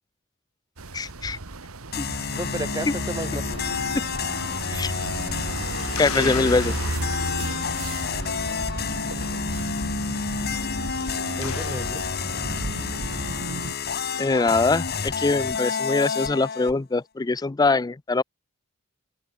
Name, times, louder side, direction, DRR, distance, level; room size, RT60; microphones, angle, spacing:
sound 1, 0.8-13.7, right 2 dB, 85° right, 1.8 m, -34 dB
voice 1, 0.9-1.4 2.0-2.1 4.7-4.9 6.0-6.7 14.2-18.2, left 3 dB, 20° left, 0.4 m, -23 dB
sound 2, 1.9-16.7, left 5 dB, 50° left, 1.6 m, -29 dB
voice 2, 2.3-3.6 6.1-6.5 11.4-12.0, right 1 dB, 20° right, 6.6 m, -33 dB
sound 3, 5.4-13.4, left 6 dB, 85° left, 2.1 m, -40 dB
head